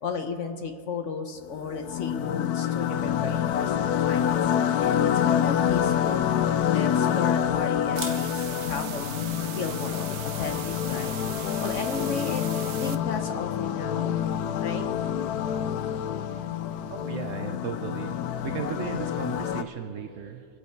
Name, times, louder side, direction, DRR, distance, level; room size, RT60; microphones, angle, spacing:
voice 1, 0.0-4.5 4.8-6.2 6.7-11.1 11.6-12.4 12.8-14.2 14.6-14.9 18.8-19.0, left 4 dB, 55° left, 6 dB, 1.0 m, -34 dB
sound 1, 1.5-19.6, left 9 dB, 75° left, 1.1 m, -27 dB
Camera, 6.2-12.0, right 4 dB, 40° right, 1.4 m, -47 dB
sound 2, 8.0-13.0, right 11 dB, 85° right, 1.2 m, -40 dB
voice 2, 16.9-20.5, right 8 dB, 65° right, 7 dB, 0.8 m, -36 dB
23.5 x 8.5 x 4.5 m, 2.4 s
omnidirectional pair, 1.8 m